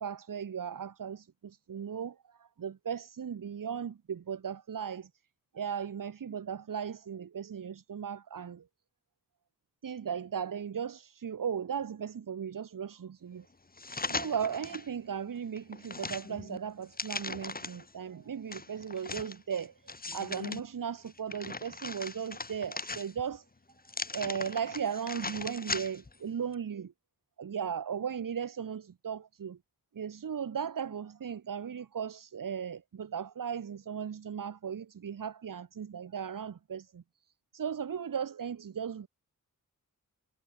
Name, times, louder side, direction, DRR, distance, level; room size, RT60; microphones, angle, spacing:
voice 1, 0.0-5.1 5.5-8.7 9.8-13.5 14.1-23.5 24.1-26.9 27.4-29.6 29.9-37.0 37.5-39.1, right 7 dB, 75° right, 7.1 m, -37 dB
sound 1, 13.8-14.9 15.3-17.9 18.5-20.6 21.1-23.4 23.8-26.2 26.5-26.6, left 3 dB, 25° left, 6.0 m, -39 dB
wide cardioid pair, 135°, 33 cm